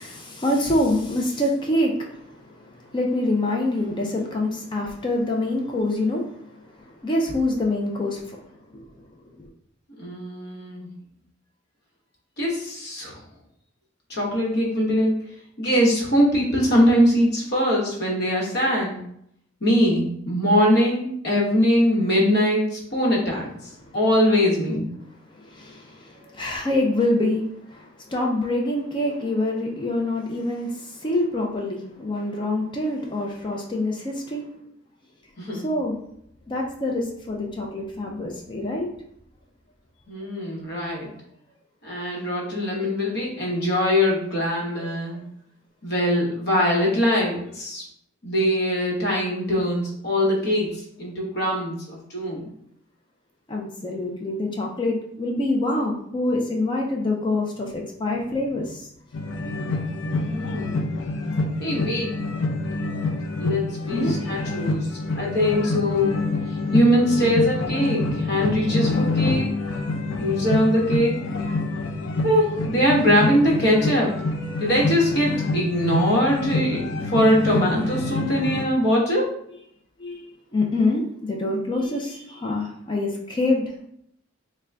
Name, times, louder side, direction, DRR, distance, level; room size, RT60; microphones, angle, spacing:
voice 1, 0.0-8.4 8.7-8.8 9.4-9.5 23.8-23.9 25.3-34.5 35.5-36.0 36.5-38.9 42.8-42.9 44.8-44.9 53.5-58.9 63.9-64.1 80.0-83.6, left 2 dB, 25° left, 0 dB, 0.4 m, -26 dB
voice 2, 10.0-10.9 12.4-13.2 14.1-15.1 15.6-18.9 19.6-23.5 23.9-24.8 35.4-35.7 40.1-41.1 41.8-45.2 45.8-47.8 48.2-50.7 51.0-52.5 60.3-60.8 61.6-62.1 63.4-66.1 66.7-69.5 70.2-71.2 72.2-74.1 74.6-79.3, equal, 55° left, -3 dB, 1.0 m, -22 dB
sound 1, 59.1-78.6, left 2 dB, 80° left, 0.5 m, -27 dB
3.7 x 2.2 x 3.3 m, 0.71 s
head